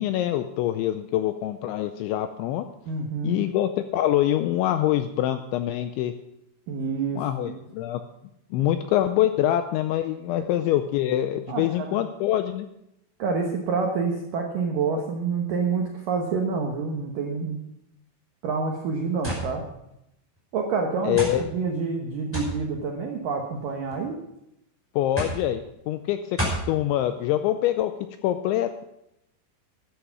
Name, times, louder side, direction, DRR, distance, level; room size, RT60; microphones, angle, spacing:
voice 1, 0.0-2.7 3.2-6.1 7.1-8.0 8.5-12.7 21.0-21.4 25.0-26.4 26.7-27.9 28.2-28.8, left 12 dB, 85° left, 9 dB, 2.7 m, -25 dB
voice 2, 2.9-3.4 6.7-7.6 8.6-8.7 10.3-10.5 11.5-12.0 13.2-17.6 18.4-19.6 20.5-24.2 27.3-27.4, right 4 dB, 80° right, 2 dB, 1.9 m, -28 dB
sound 1, 19.2-19.5 20.4-20.5 21.2-21.4 22.3-22.6 23.6-24.0 25.2-25.4 26.4-26.7, equal, 5° left, 4.7 m, -29 dB
13.0 x 10.5 x 6.0 m, 0.83 s
omnidirectional pair, 5.8 m